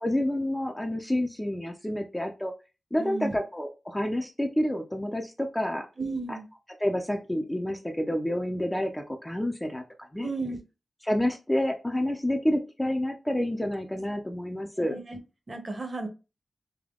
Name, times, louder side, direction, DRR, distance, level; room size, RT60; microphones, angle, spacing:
voice 1, 0.0-2.5 2.9-5.9 6.3-6.4 6.8-10.3 11.0-15.0, left 1 dB, 10° left, 3 dB, 0.5 m, -29 dB
voice 2, 3.0-3.4 6.0-6.5 10.2-10.6 14.8-15.2 15.5-16.1, right 3 dB, 35° right, 6 dB, 0.9 m, -33 dB
3.5 x 2.7 x 3.7 m, 0.29 s
wide cardioid pair, 100°, 0 cm